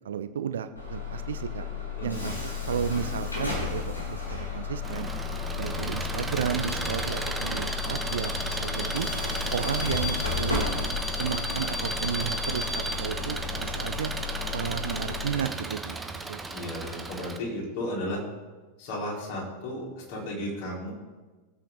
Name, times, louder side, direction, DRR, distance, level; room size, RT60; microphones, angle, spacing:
voice 1, 0.0-1.7 2.0-5.1 5.5-9.1 9.5-10.6 11.2-14.1 14.5-16.4, right 8 dB, 65° right, 11 dB, 0.9 m, -33 dB
Bus / Alarm, 0.7-15.3, left 5 dB, 80° left, 3.5 m, -33 dB
voice 2, 2.0-2.3 16.5-18.2 18.8-20.9, left 1 dB, 50° left, -4 dB, 4.7 m, -34 dB
Engine, 4.8-17.4, right 3 dB, 10° right, 1.1 m, -35 dB
20.0 x 8.7 x 3.9 m, 1.3 s
figure-of-eight pair, 90°, 0 cm